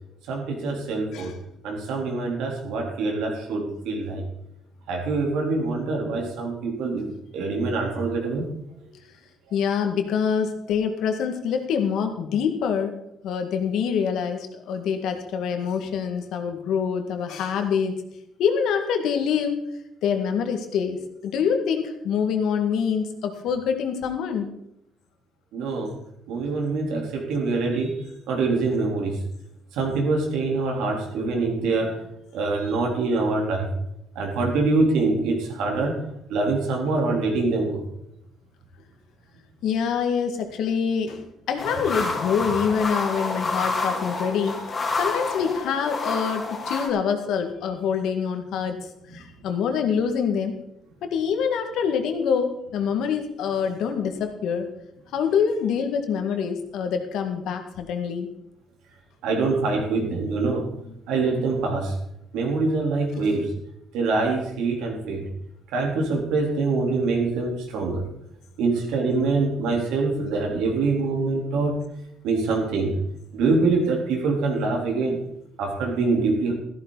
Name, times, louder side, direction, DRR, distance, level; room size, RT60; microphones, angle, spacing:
voice 1, 0.3-1.3 1.6-4.2 4.9-8.5 25.5-25.9 26.3-29.2 29.7-32.0 32.3-33.7 34.2-36.0 36.3-37.8 59.2-60.7 61.1-61.9 62.3-63.5 63.9-65.3 65.7-68.1 68.6-71.8 72.2-72.9 73.3-75.2 75.6-76.5, right 3 dB, 85° right, 0 dB, 3.7 m, -24 dB
voice 2, 9.5-12.9 13.2-18.0 18.4-19.7 20.0-24.5 39.6-44.6 45.0-48.8 49.1-50.6 51.0-54.7 55.1-58.3 60.8-60.9, left 7 dB, 70° left, 6 dB, 2.0 m, -25 dB
sound 1, 41.6-46.9, left 3 dB, 25° left, 3.0 m, -28 dB
14.0 x 13.0 x 4.1 m, 0.81 s
cardioid pair, 145°, 0 cm